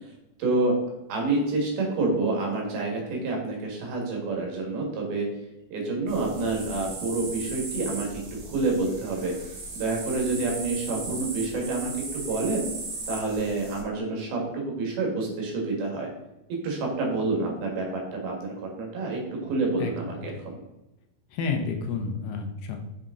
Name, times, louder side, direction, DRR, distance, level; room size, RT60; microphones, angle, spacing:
voice 1, 0.4-0.7 1.1-5.3 5.7-8.1 8.5-9.3 9.7-12.7 13.1-14.4 14.7-16.1 16.6-20.6, right 3 dB, 80° right, 0 dB, 3.8 m, -28 dB
sound 1, 6.1-13.8, right 3 dB, 55° right, 3.0 m, -37 dB
voice 2, 19.8-20.5 21.3-22.8, left 4 dB, 75° left, 4 dB, 2.4 m, -31 dB
6.9 x 6.2 x 3.7 m, 0.92 s
omnidirectional pair, 4.3 m